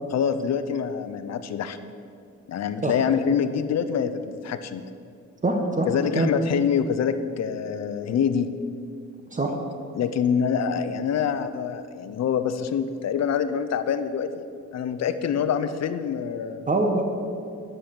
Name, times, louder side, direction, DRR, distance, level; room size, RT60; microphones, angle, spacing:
voice 1, 0.1-1.8 2.5-4.8 5.9-8.5 9.9-14.3 14.7-16.7, left 7 dB, 60° left, 11 dB, 0.8 m, -25 dB
voice 2, 5.4-5.9 6.1-6.3 9.3-9.5 16.7-17.0, right 2 dB, 25° right, 3 dB, 1.3 m, -23 dB
10.5 x 7.6 x 6.8 m, 2.4 s
cardioid pair, 90°, 30 cm